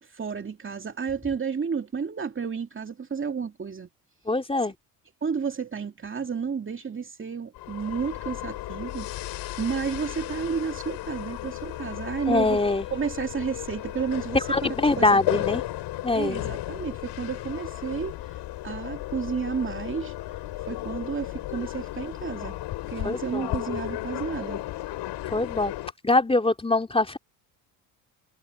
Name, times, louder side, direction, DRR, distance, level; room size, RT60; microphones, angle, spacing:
voice 1, 0.0-3.9 5.2-12.6 12.9-15.5 16.1-20.1 20.7-22.6 22.9-24.6, right 6 dB, 25° right, 2.5 m, -32 dB
voice 2, 4.3-4.7 12.3-12.8 14.5-15.6 16.0-16.4 23.0-23.6 25.3-25.7 26.0-27.2, left 2 dB, 10° left, 3.0 m, -23 dB
sound 1, 7.5-25.9, left 15 dB, 65° left, 4.5 m, -34 dB
supercardioid pair, 75°, 44 cm